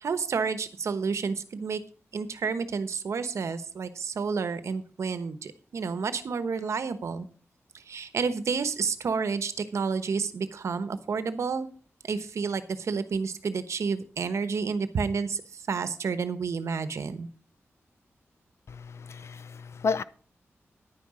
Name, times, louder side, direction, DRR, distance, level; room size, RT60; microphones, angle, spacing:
voice 1, 0.0-1.8 2.1-7.3 7.7-11.7 12.0-17.3, right 5 dB, 75° right, 1.1 m, -30 dB
voice 2, 18.7-20.0, left 5 dB, 65° left, 0.6 m, -32 dB
10.5 x 9.6 x 4.9 m
wide cardioid pair, 135°, 5 cm